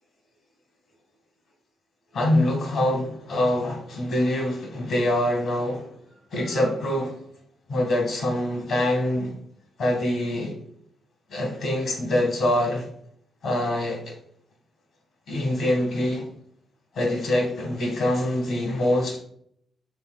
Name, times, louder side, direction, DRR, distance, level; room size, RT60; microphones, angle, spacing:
voice 1, 2.1-5.9 6.3-7.2 7.7-9.3 9.8-10.6 11.3-12.9 13.4-14.1 15.3-16.3 16.9-19.2, left 1 dB, 70° left, 1.6 m, -24 dB
5.7 x 3.5 x 2.3 m
supercardioid pair, 50°, 0 cm